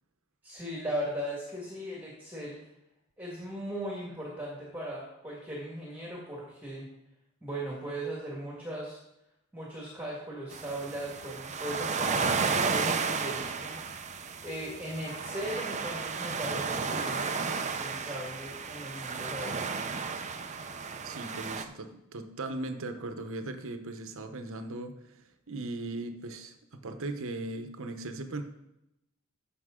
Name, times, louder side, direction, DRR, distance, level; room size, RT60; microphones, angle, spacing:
voice 1, 0.4-2.6 3.2-6.9 7.4-9.0 9.5-13.8 14.4-19.7, equal, 10° right, -4 dB, 1.9 m, -38 dB
sound 1, 10.5-21.6, right 5 dB, 35° right, 0.6 m, -33 dB
voice 2, 21.0-25.2 25.5-28.4, right 2 dB, 65° right, 7 dB, 1.0 m, -38 dB
14.5 x 5.9 x 3.8 m, 0.86 s
head